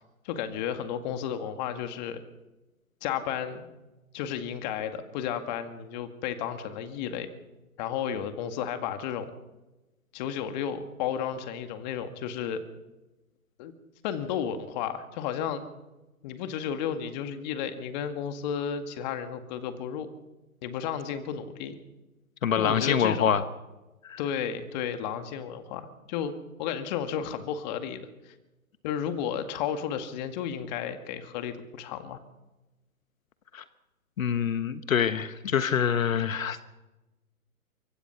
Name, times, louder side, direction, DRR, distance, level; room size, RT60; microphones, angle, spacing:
voice 1, 0.2-2.2 3.0-3.7 4.1-7.3 7.8-9.3 10.1-12.6 13.6-13.7 14.0-15.6 16.2-20.1 20.6-21.8 22.5-23.4 24.2-26.3 26.6-28.3 28.8-32.2, left 8 dB, 30° left, 8 dB, 2.0 m, -33 dB
voice 2, 22.4-23.4 24.0-24.2 33.5-33.6 34.2-36.6, left 8 dB, 65° left, 11 dB, 1.4 m, -25 dB
25.0 x 24.0 x 5.9 m, 1.1 s
hypercardioid pair, 140°, 44 cm